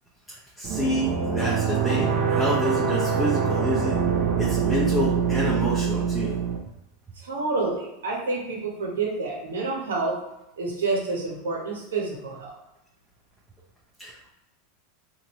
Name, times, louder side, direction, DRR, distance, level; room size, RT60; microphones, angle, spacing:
voice 1, 0.3-4.0 4.4-6.4 14.0-14.3, equal, 5° right, -6 dB, 0.7 m, -28 dB
sound 1, 0.6-6.6, right 6 dB, 50° right, 0.6 m, -24 dB
voice 2, 7.2-10.1 10.6-12.6, right 3 dB, 85° right, -2 dB, 1.1 m, -28 dB
2.8 x 2.6 x 3.0 m, 0.90 s
hypercardioid pair, 105°, 0 cm